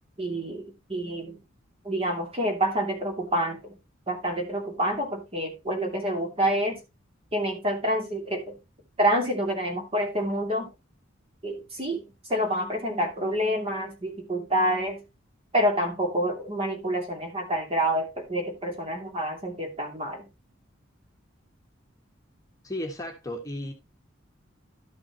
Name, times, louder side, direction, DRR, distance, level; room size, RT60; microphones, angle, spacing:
voice 1, 0.2-1.4 1.8-3.8 4.1-6.8 7.3-8.6 9.0-10.7 11.4-12.0 12.3-15.0 15.5-20.3, equal, 30° right, 2.5 m, -27 dB
voice 2, 22.6-23.7, left 1 dB, 20° left, 1.5 m, -34 dB
12.5 x 6.0 x 2.9 m
head